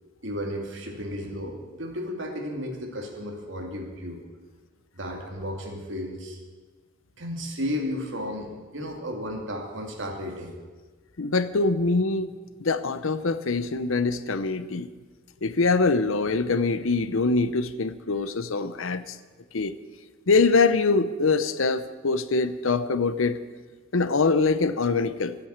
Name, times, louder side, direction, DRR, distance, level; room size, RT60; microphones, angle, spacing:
voice 1, 0.2-4.2 4.9-6.4 7.2-10.5, equal, 65° right, 1 dB, 2.6 m, -33 dB
voice 2, 11.2-14.9 15.4-19.2 19.5-19.7 20.3-23.4 23.9-25.4, left 3 dB, 80° left, 13 dB, 0.8 m, -24 dB
13.0 x 8.9 x 8.8 m, 1.4 s
head